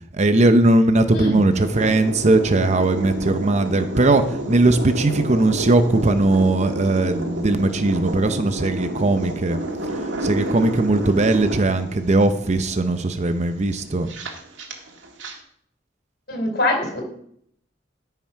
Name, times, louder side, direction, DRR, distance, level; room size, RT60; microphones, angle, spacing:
voice 1, 0.1-4.2 4.5-9.6 10.2-14.1, right 2 dB, 40° right, 9 dB, 0.7 m, -19 dB
sound 1, 1.5-15.3, right 1 dB, 80° right, 2.0 m, -30 dB
voice 2, 16.3-17.0, left 1 dB, 60° left, 2 dB, 3.9 m, -23 dB
13.5 x 5.8 x 5.7 m, 0.67 s
head